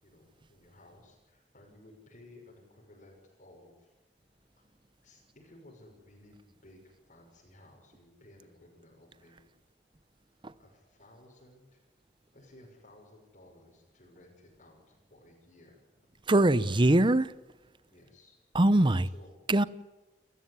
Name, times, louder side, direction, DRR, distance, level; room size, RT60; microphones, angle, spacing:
voice 1, 0.0-3.9 4.6-4.7 5.0-9.5 10.6-11.8 12.3-15.8 17.9-18.4 19.0-19.3, left 1 dB, 45° left, 6.4 m, -57 dB
voice 2, 16.3-17.3 18.5-19.1 19.5-19.6, right 1 dB, 30° right, 0.8 m, -22 dB
30.0 x 15.0 x 9.8 m
head